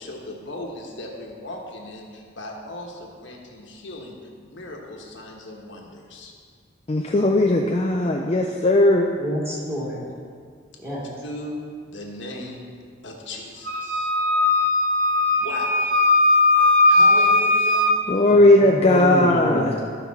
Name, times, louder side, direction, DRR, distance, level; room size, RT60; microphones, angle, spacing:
voice 1, 0.0-4.2 4.4-6.3 11.2-11.6 11.8-12.6 13.0-14.1 15.4-15.9 16.9-17.9, left 1 dB, 65° left, -1 dB, 1.3 m, -36 dB
voice 2, 6.9-9.1 18.1-19.7, left 1 dB, 30° left, 1 dB, 0.4 m, -17 dB
voice 3, 9.2-10.0 10.8-11.1 18.3-19.8, equal, 15° right, -8 dB, 2.5 m, -28 dB
Wind instrument woodwind instrument, 13.7-18.0, left 2 dB, 45° right, 0.6 m, -18 dB
14.0 x 5.5 x 4.2 m, 2.1 s
head